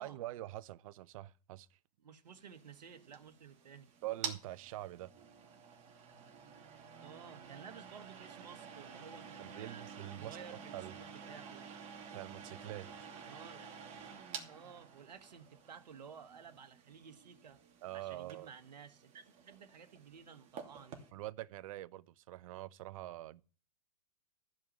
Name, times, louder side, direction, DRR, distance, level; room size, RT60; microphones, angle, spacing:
voice 1, 0.0-1.7 4.0-5.1 9.4-11.0 12.0-12.9 17.8-18.5 21.1-23.4, right 15 dB, 55° right, 0.8 m, -45 dB
voice 2, 2.0-4.0 7.0-9.9 10.2-11.7 13.3-13.8 14.4-17.6 17.9-21.0, right 7 dB, 90° right, 1.3 m, -54 dB
sound 1, 2.4-21.1, right 6 dB, 30° right, 2.7 m, -50 dB
14.5 x 5.3 x 8.9 m
hypercardioid pair, 125°, 21 cm